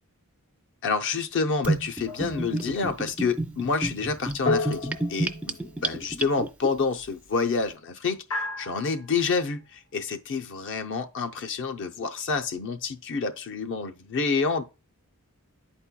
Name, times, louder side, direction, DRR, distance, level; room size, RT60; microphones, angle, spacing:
voice 1, 0.8-8.2 8.6-14.6, left 4 dB, 60° left, 0.6 m, -28 dB
Gurgling / Bathtub (filling or washing), 1.6-6.7, right 2 dB, 5° right, 0.3 m, -30 dB
sound 1, 2.1-2.7 4.5-5.8 8.3-9.1, left 3 dB, 80° left, 0.9 m, -32 dB
11.0 x 4.3 x 2.2 m
head